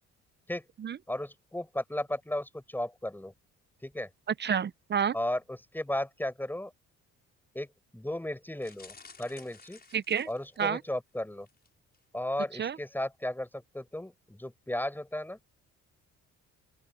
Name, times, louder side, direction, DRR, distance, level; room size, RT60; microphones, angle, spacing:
voice 1, 1.1-3.3 3.8-4.1 5.1-6.7 7.5-7.7 7.9-9.8 10.3-11.5 12.1-15.4, left 1 dB, 5° left, 6.3 m, -35 dB
voice 2, 4.4-5.1 9.9-10.3 10.6-10.8 12.6-12.8, right 8 dB, 35° right, 0.6 m, -29 dB
sound 1, 8.6-10.9 11.4-11.7 11.9-12.0, left 4 dB, 30° left, 6.1 m, -54 dB
open air
cardioid pair, 90°, 30 cm